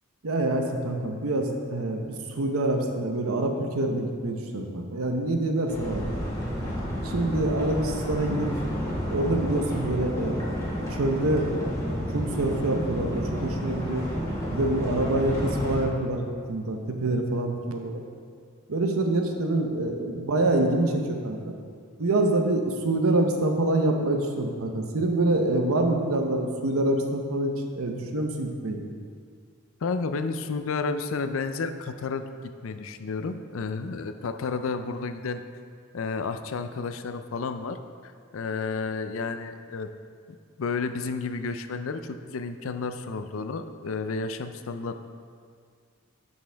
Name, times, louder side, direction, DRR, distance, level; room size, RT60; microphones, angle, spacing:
voice 1, 0.2-6.0 7.0-8.5 9.1-10.4 10.9-11.5 12.1-14.1 14.5-18.0 18.7-21.4 22.0-28.8, right 2 dB, 80° right, 3 dB, 0.8 m, -26 dB
sound 1, 5.7-15.8, equal, 15° left, 1.6 m, -30 dB
voice 2, 29.8-35.4 35.9-39.9 40.6-45.0, left 4 dB, 70° left, 9 dB, 0.4 m, -31 dB
11.0 x 5.4 x 3.4 m, 2.1 s
head